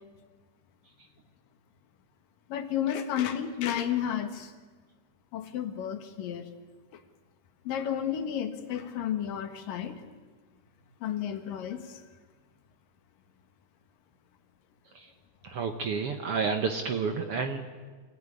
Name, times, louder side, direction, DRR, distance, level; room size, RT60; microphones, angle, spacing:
voice 1, 2.5-4.5 5.3-6.5 7.7-10.0 11.0-12.0, left 9 dB, 80° left, 8 dB, 3.2 m, -32 dB
voice 2, 15.4-17.6, right 5 dB, 55° right, 6 dB, 1.7 m, -30 dB
25.5 x 17.0 x 9.9 m, 1.4 s
omnidirectional pair, 3.9 m